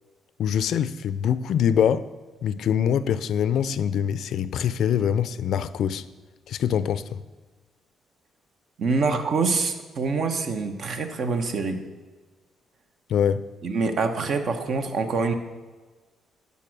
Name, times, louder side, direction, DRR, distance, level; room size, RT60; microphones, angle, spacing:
voice 1, 0.4-2.1 2.4-6.0 6.5-7.2 13.1-13.4, left 8 dB, 70° left, 0.4 m, -24 dB
voice 2, 8.8-11.8 13.6-15.3, right 4 dB, 60° right, 1.1 m, -25 dB
11.5 x 5.5 x 6.1 m
cardioid pair, 90°, 0 cm